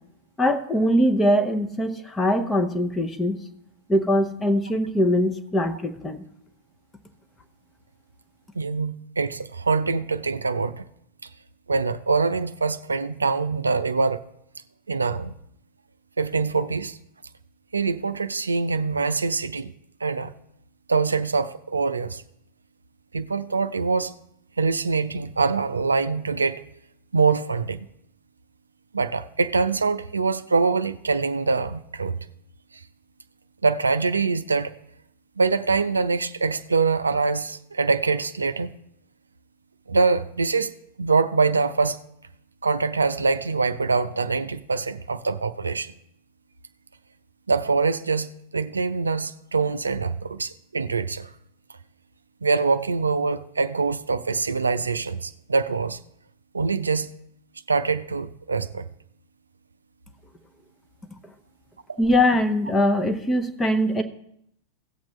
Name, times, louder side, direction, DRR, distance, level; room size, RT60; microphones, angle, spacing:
voice 1, 0.4-3.4 3.9-6.2 62.0-64.0, left 1 dB, 10° left, 0.9 m, -22 dB
voice 2, 8.6-10.8 11.7-14.2 14.9-15.3 16.2-17.0 17.7-19.7 20.0-20.3 20.9-22.2 23.1-24.1 24.6-26.6 27.1-27.9 28.9-32.2 33.6-34.7 35.4-38.7 39.9-42.0 42.6-45.9 47.5-51.3 52.4-56.0 56.5-57.1 57.7-58.9, right 4 dB, 75° right, 0.4 m, -24 dB
17.0 x 7.3 x 3.2 m
figure-of-eight pair, 90°, 0 cm